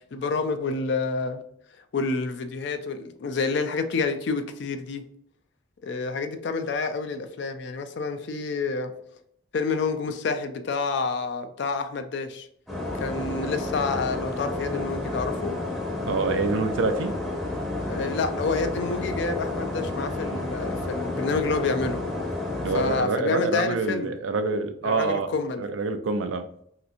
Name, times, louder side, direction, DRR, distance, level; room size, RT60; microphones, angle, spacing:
voice 1, 0.1-1.4 1.9-5.0 5.8-8.9 9.5-12.5 13.0-15.6 17.9-22.0 22.7-24.1 24.8-25.6, left 4 dB, 60° left, 0.4 m, -28 dB
Kitchen Ambience During Daytime, 12.7-23.0, left 2 dB, ahead, 0.6 m, -30 dB
voice 2, 16.0-17.2 22.6-25.3 25.6-26.4, right 3 dB, 70° right, 0.4 m, -26 dB
3.1 x 2.9 x 2.5 m
head